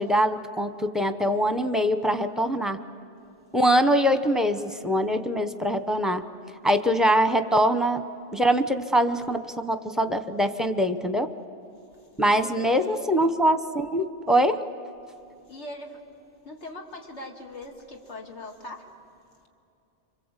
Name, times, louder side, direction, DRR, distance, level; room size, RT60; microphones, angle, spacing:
voice 1, 0.0-2.8 3.5-6.2 6.6-8.0 8.3-11.3 12.2-14.6, equal, ahead, 9 dB, 0.8 m, -23 dB
voice 2, 12.0-13.2 15.1-16.0 16.4-18.9, left 1 dB, 85° left, 2 dB, 2.4 m, -41 dB
27.5 x 24.5 x 8.2 m, 2.7 s
omnidirectional pair, 1.2 m